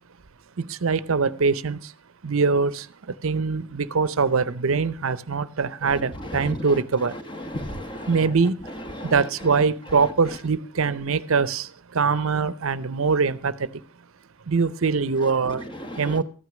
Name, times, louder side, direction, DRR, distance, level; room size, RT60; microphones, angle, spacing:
voice 1, 0.6-1.9 2.2-7.1 8.1-8.7 9.0-13.8 14.5-15.6 16.0-16.2, right 5 dB, 70° right, 0.7 m, -23 dB
voice 2, 5.8-6.8 7.3-8.3 8.9-9.1 15.4-16.2, left 1 dB, 20° left, 1.2 m, -35 dB
13.5 x 9.6 x 6.0 m
head